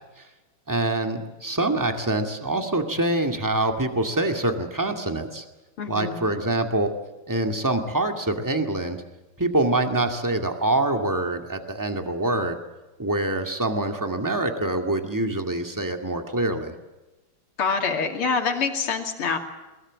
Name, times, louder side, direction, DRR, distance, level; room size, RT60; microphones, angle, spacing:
voice 1, 0.7-5.4 5.9-6.9 7.3-9.0 9.4-12.6 13.0-16.8, right 2 dB, 10° right, 5 dB, 2.0 m, -25 dB
voice 2, 5.8-6.2 17.6-19.4, left 5 dB, 80° left, 4 dB, 3.4 m, -25 dB
22.5 x 21.0 x 7.5 m, 1.1 s
omnidirectional pair, 2.4 m